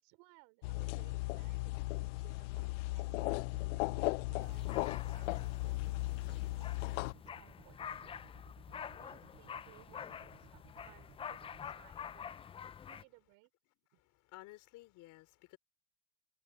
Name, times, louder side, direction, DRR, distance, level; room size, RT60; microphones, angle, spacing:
voice 1, 0.0-3.4 4.2-8.0 8.9-12.3 12.9-13.5 13.9-14.0, right 29 dB, 70° right, 5.6 m, -64 dB
sound 1, 0.6-7.1, left 22 dB, 80° left, 0.6 m, -36 dB
sound 2, 2.9-11.6, right 13 dB, 45° right, 6.1 m, -61 dB
sound 3, 4.4-13.0, left 8 dB, 15° left, 0.4 m, -48 dB
voice 2, 14.0-15.6, left 18 dB, 55° left, 3.7 m, -55 dB
supercardioid pair, 120°, 36 cm